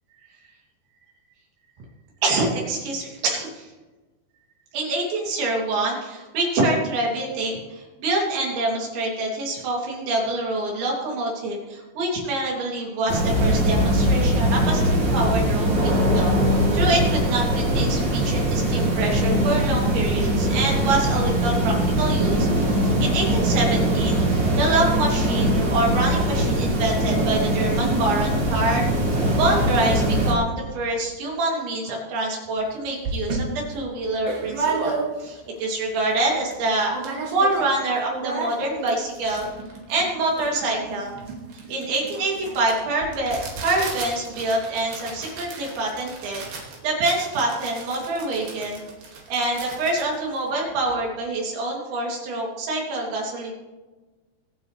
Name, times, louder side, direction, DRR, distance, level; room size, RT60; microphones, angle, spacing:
voice 1, 2.2-3.7 4.7-28.9 29.1-39.5 39.9-41.1 41.5-46.4 46.8-48.8 49.3-53.5, right 2 dB, 90° right, -2 dB, 5.4 m, -26 dB
sound 1, 13.1-30.3, equal, 30° right, 3.0 m, -21 dB
sound 2, 32.6-32.7 33.0-35.4 35.8-35.9 36.1-36.6 36.9-37.7 38.0-51.0, right 4 dB, 60° right, 4.1 m, -33 dB
25.0 x 8.6 x 3.4 m, 1.2 s
omnidirectional pair, 5.0 m